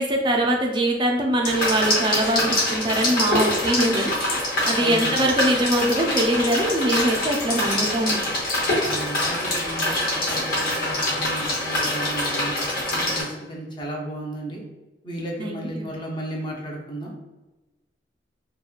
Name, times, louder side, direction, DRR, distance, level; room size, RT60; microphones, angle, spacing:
voice 1, 0.0-4.1 4.5-8.2 15.4-15.8, right 1 dB, 25° right, 1 dB, 0.4 m, -23 dB
sound 1, 1.4-13.2, left 1 dB, 55° left, 0.9 m, -24 dB
voice 2, 4.8-5.2 8.8-12.5 12.9-14.6 15.0-17.1, right 1 dB, 25° left, -1 dB, 0.6 m, -34 dB
2.9 x 2.2 x 2.3 m, 1.1 s
head